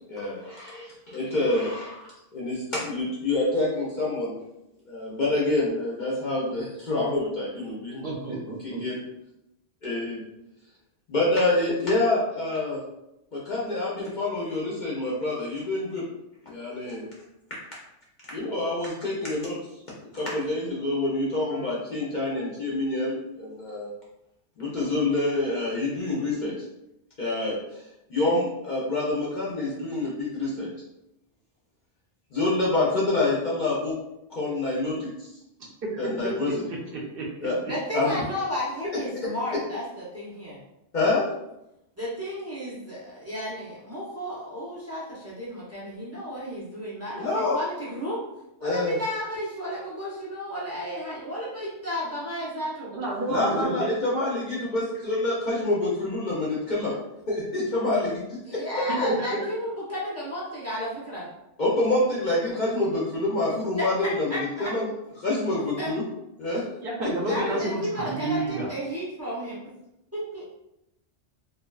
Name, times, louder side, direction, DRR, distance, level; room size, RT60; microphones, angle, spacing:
voice 1, 0.1-4.3 4.9-9.0 9.8-10.2 11.1-12.8 13.3-16.0 16.4-17.1 18.3-19.6 20.1-23.9 24.6-26.5 27.2-27.8 28.1-30.7 32.3-33.9 34.3-35.3 36.0-36.6 37.4-37.6 37.9-38.2 39.5-39.6 40.9-41.3 47.2-47.6 48.6-49.0 53.3-56.9 57.3-58.8 61.6-64.9 65.2-66.0 66.4-66.6 67.0-67.3, left 2 dB, 55° left, -6 dB, 0.6 m, -27 dB
voice 2, 8.0-8.8 36.9-37.2 52.9-53.9 59.2-59.3 66.8-68.7, right 2 dB, 60° right, -3 dB, 0.7 m, -30 dB
voice 3, 37.6-39.8 40.1-40.6 42.0-48.2 48.6-52.9 58.4-61.3 63.8-63.9 64.3-64.7 65.8-65.9 67.3-69.6 70.1-70.4, equal, 20° right, -8 dB, 0.4 m, -33 dB
2.5 x 2.1 x 2.3 m, 0.88 s
omnidirectional pair, 1.2 m